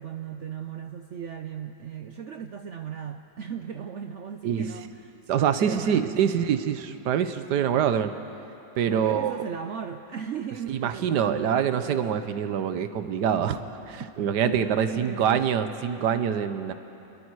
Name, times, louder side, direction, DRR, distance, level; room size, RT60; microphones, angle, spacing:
voice 1, 0.0-5.2 5.6-6.4 8.9-12.1 14.4-15.5, right 7 dB, 80° right, 6 dB, 0.6 m, -37 dB
voice 2, 5.3-8.1 8.8-9.3 10.7-13.6 13.9-16.7, right 8 dB, 65° right, 10 dB, 1.4 m, -25 dB
30.0 x 21.5 x 4.8 m, 3.0 s
omnidirectional pair, 2.1 m